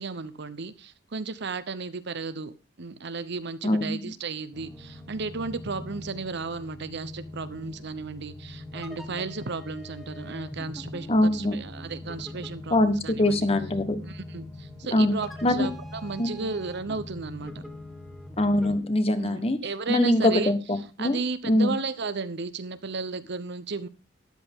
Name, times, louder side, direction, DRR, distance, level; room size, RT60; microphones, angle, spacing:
voice 1, 0.0-2.5 2.8-13.4 14.0-17.6 19.2-20.5 21.0-23.9, right 4 dB, 60° right, 14 dB, 0.9 m, -34 dB
voice 2, 3.6-4.1 11.1-11.6 12.7-14.0 14.9-15.1 15.4-15.7 16.2-16.3 18.4-19.6 19.9-21.2 21.5-21.7, left 1 dB, 30° left, 10 dB, 1.3 m, -23 dB
sound 1, 4.5-18.8, left 1 dB, ahead, 1.6 m, -42 dB
13.0 x 10.5 x 3.7 m, 0.30 s
head